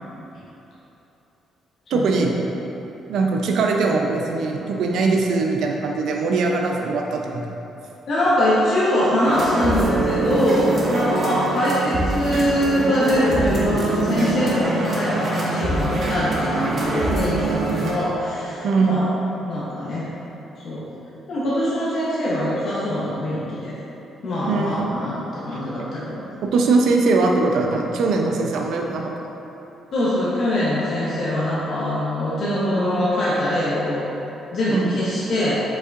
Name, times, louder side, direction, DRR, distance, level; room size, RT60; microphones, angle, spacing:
voice 1, 1.9-2.3 3.1-7.4 18.6-18.9 24.5-24.9 26.4-29.1 34.7-34.9, right 3 dB, 75° right, 1 dB, 0.4 m, -21 dB
voice 2, 8.1-19.1 19.5-20.1 20.6-20.9 21.3-23.7 24.2-26.2 29.9-34.0 34.5-35.6, left 1 dB, 60° left, -9 dB, 0.9 m, -23 dB
sound 1, 9.2-17.9, right 2 dB, 45° right, 0.9 m, -24 dB
sound 2, 9.3-17.8, right 2 dB, 10° left, 1.0 m, -33 dB
5.4 x 3.5 x 2.5 m, 3.0 s
cardioid pair, 90°, 0 cm